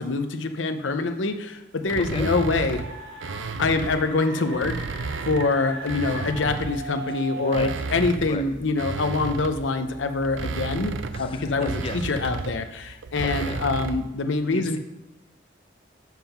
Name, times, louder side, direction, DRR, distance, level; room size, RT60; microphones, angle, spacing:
voice 1, 0.0-2.8 3.6-5.0 5.3-14.8, left 3 dB, 85° left, 7 dB, 0.7 m, -25 dB
sound 1, 1.9-4.1 4.5-6.9 7.4-14.1, right 4 dB, 90° right, 0.5 m, -33 dB
voice 2, 2.0-2.3 7.1-7.9 8.3-8.5 11.1-12.4 13.2-13.6 14.5-14.8, left 3 dB, 30° left, 8 dB, 0.5 m, -35 dB
sound 2, 2.7-7.7, right 2 dB, 70° right, 1.8 m, -38 dB
7.5 x 5.4 x 5.8 m, 0.92 s
head